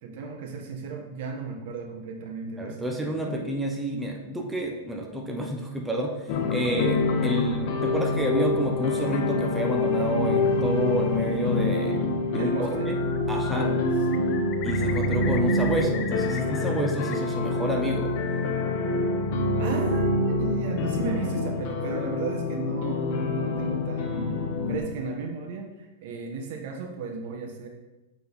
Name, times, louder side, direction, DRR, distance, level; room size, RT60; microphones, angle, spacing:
voice 1, 0.0-3.4 12.3-12.9 13.5-14.3 19.6-24.3 24.7-27.7, right 4 dB, 60° right, 2 dB, 1.2 m, -34 dB
voice 2, 2.6-13.0 13.3-13.7 14.6-18.2, right 1 dB, 5° right, 0 dB, 0.7 m, -29 dB
sound 1, 6.3-24.8, left 2 dB, 50° left, 0.9 m, -26 dB
Bird, 12.6-13.2 13.4-17.1 17.5-18.3, left 9 dB, 35° left, 0.5 m, -39 dB
8.1 x 3.8 x 4.0 m, 1.1 s
supercardioid pair, 140°, 0 cm